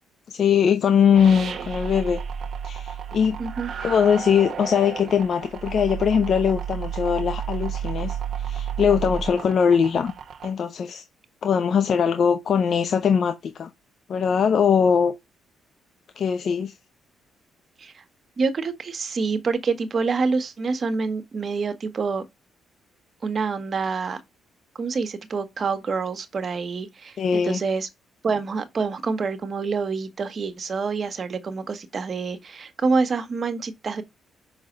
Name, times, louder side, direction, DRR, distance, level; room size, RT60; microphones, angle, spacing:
voice 1, 0.3-2.2 2.6-3.4 3.8-10.1 10.4-11.0 11.4-13.7 14.1-15.1 16.2-16.7 27.2-27.6, left 7 dB, 60° left, 0.7 m, -21 dB
sound 1, 1.1-10.5, right 8 dB, 60° right, 1.0 m, -32 dB
voice 2, 3.4-3.7 17.8-18.0 18.4-22.2 23.2-24.2 24.8-27.9 28.2-34.0, right 4 dB, 45° right, 1.3 m, -27 dB
6.0 x 4.0 x 5.2 m
cardioid pair, 90°, 0 cm